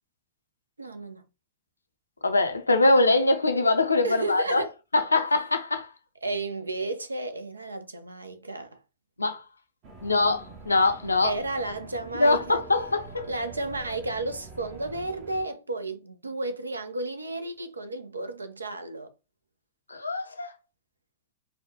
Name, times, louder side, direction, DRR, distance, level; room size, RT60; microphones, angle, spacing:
voice 1, 0.8-1.2 4.0-4.7 6.2-8.8 11.2-12.6 13.3-19.1, right 2 dB, 80° right, 0.5 m, -32 dB
voice 2, 2.2-4.6 4.9-5.9 9.2-9.4 10.0-11.3 12.2-13.3 19.9-20.5, left 2 dB, 80° left, 0.5 m, -23 dB
sound 1, 9.8-15.4, right 3 dB, 40° right, 0.8 m, -45 dB
4.1 x 2.2 x 2.9 m
figure-of-eight pair, 90°, 0 cm